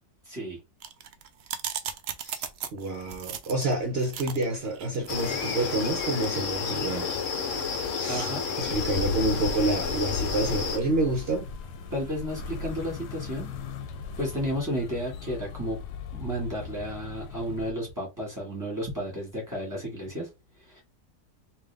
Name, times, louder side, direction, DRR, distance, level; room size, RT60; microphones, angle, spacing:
voice 1, 0.3-0.6 8.1-8.4 11.9-13.6 14.2-15.8 16.1-20.3 20.6-20.8, equal, 10° right, 2.0 m, -32 dB
sound 1, 0.8-12.2, right 8 dB, 85° right, 0.5 m, -41 dB
voice 2, 2.2-7.1 8.0-8.3 8.6-11.5, right 2 dB, 50° right, 0.9 m, -28 dB
sound 2, 5.1-10.8, left 5 dB, 55° left, 1.1 m, -31 dB
sound 3, 8.6-17.7, left 4 dB, 80° left, 1.2 m, -37 dB
3.7 x 2.8 x 3.5 m
omnidirectional pair, 1.7 m